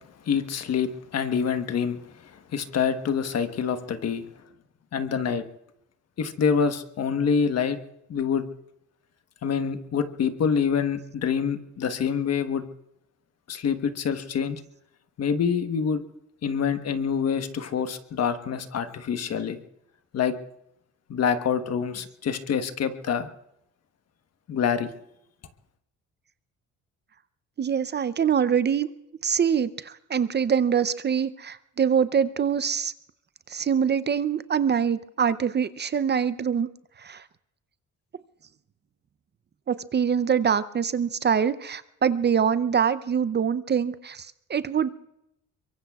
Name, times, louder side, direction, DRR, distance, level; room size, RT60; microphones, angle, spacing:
voice 1, 0.3-2.0 2.5-4.2 4.9-5.4 6.2-7.8 8.1-8.4 9.4-12.6 13.5-14.6 15.2-16.0 16.4-19.6 20.1-20.3 21.1-23.3 24.5-24.9, left 6 dB, 55° left, 9 dB, 1.2 m, -26 dB
voice 2, 27.6-28.9 29.2-32.9 33.5-36.7 37.0-37.2 39.7-44.9, right 7 dB, 35° right, 14 dB, 0.6 m, -24 dB
24.0 x 23.0 x 2.4 m, 0.83 s
cardioid pair, 90°, 30 cm